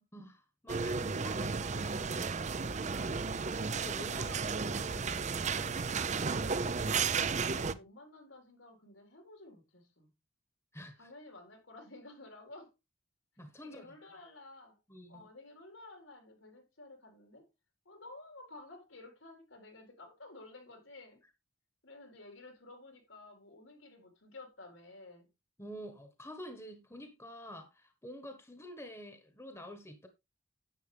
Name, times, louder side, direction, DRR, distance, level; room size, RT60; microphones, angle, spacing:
voice 1, 0.1-2.4 3.6-6.2 7.6-7.8 10.7-11.1 13.4-14.2 14.9-15.3 25.6-30.1, equal, 15° left, 1.3 m, -49 dB
sound 1, 0.7-7.7, right 5 dB, 35° right, 0.6 m, -33 dB
voice 2, 4.0-4.5 7.6-10.1 11.0-12.7 13.6-14.8 15.1-17.5 17.8-21.2 21.8-25.3, left 2 dB, 80° left, 4.1 m, -53 dB
10.0 x 8.2 x 3.3 m
head